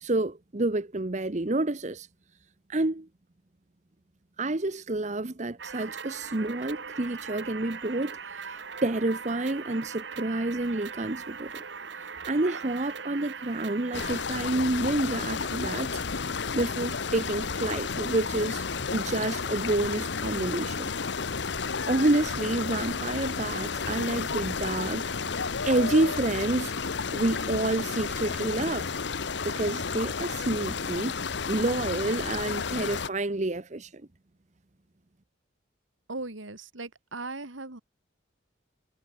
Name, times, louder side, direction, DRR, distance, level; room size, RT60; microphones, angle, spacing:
voice 1, 0.0-2.1 2.7-3.1 4.4-11.6 12.2-18.6 18.9-20.9 21.9-26.7 27.1-28.9 29.4-31.2 31.5-34.0, right 2 dB, 35° right, 0.9 m, -29 dB
sound 1, 5.6-14.3, right 5 dB, 65° right, 1.5 m, -40 dB
sound 2, 13.9-33.1, left 5 dB, 65° left, 0.9 m, -32 dB
sound 3, 15.1-28.4, left 3 dB, 80° left, 1.4 m, -42 dB
voice 2, 36.1-37.8, right 3 dB, 80° right, 2.5 m, -38 dB
head